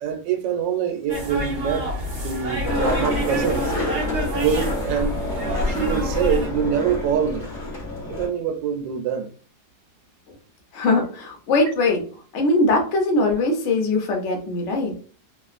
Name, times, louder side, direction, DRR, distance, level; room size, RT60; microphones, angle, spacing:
voice 1, 0.0-1.9 2.1-3.7 4.4-5.2 5.6-7.5 8.1-9.3, right 7 dB, 85° right, 1.3 m, -25 dB
sound 1, 1.1-6.5, equal, 45° right, 0.9 m, -27 dB
Skateboard, 2.6-8.3, left 1 dB, 15° left, 0.8 m, -28 dB
voice 2, 10.7-12.0 12.3-15.0, left 2 dB, 55° left, 0.9 m, -21 dB
3.0 x 2.4 x 2.4 m
omnidirectional pair, 1.9 m